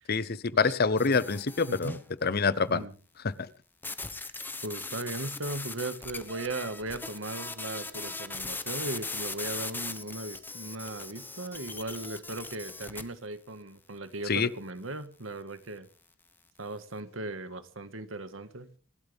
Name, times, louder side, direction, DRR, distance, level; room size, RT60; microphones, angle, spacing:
voice 1, 0.1-2.8 3.2-3.5 14.3-14.5, left 4 dB, 50° left, 18 dB, 0.8 m, -27 dB
sound 1, 1.0-2.0 3.8-13.0, left 3 dB, 10° left, 1.2 m, -39 dB
voice 2, 1.7-2.0 2.7-2.9 4.6-15.9 16.6-18.7, right 2 dB, 85° right, 11 dB, 1.8 m, -37 dB
26.0 x 12.0 x 3.5 m, 0.38 s
head